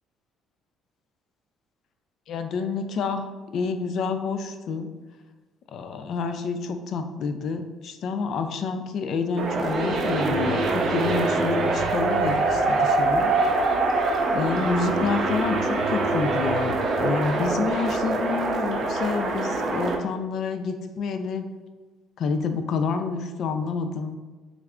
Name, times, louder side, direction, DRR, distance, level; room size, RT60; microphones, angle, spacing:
voice 1, 2.3-4.9 5.7-13.3 14.3-21.4 22.2-24.2, left 4 dB, 65° left, 7 dB, 0.3 m, -28 dB
sound 1, 9.4-20.0, right 3 dB, 60° right, 0.5 m, -24 dB
3.2 x 2.4 x 3.4 m, 1.3 s
supercardioid pair, 80°, 0 cm